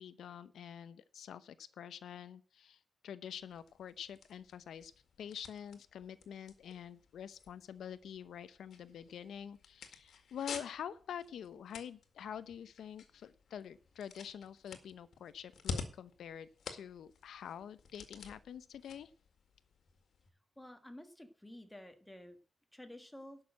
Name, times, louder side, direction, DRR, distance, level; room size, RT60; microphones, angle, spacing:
voice 1, 0.0-4.9 5.2-19.1, left 8 dB, 85° left, 14 dB, 0.7 m, -47 dB
sound 1, 3.3-20.3, left 5 dB, 70° left, 2.0 m, -50 dB
voice 2, 20.6-22.4 22.7-23.4, left 1 dB, 5° left, 6 dB, 1.7 m, -51 dB
11.5 x 6.5 x 7.5 m, 0.40 s
wide cardioid pair, 150°, 0 cm